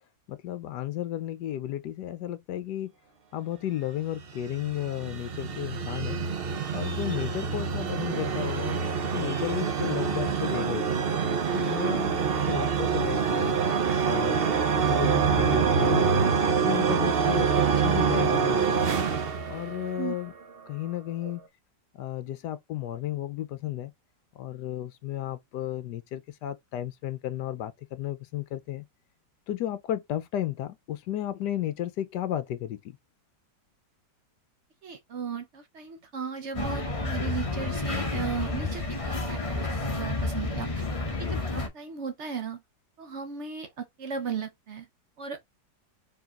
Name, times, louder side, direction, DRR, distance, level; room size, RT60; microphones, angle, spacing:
voice 1, 0.3-2.9 3.3-6.2 6.7-8.8 9.1-10.9 11.5-13.6 14.0-18.8 19.5-20.3 20.7-21.4 21.9-23.9 24.4-28.8 29.5-33.0, left 12 dB, 75° left, 1.2 m, -33 dB
sound 1, 4.2-20.3, right 6 dB, 90° right, 0.5 m, -26 dB
voice 2, 34.8-40.9 41.2-42.6 43.0-44.9 45.2-45.4, right 6 dB, 60° right, 0.8 m, -36 dB
sound 2, 36.5-41.7, left 3 dB, 25° left, 0.8 m, -30 dB
4.6 x 3.5 x 2.9 m
omnidirectional pair, 1.9 m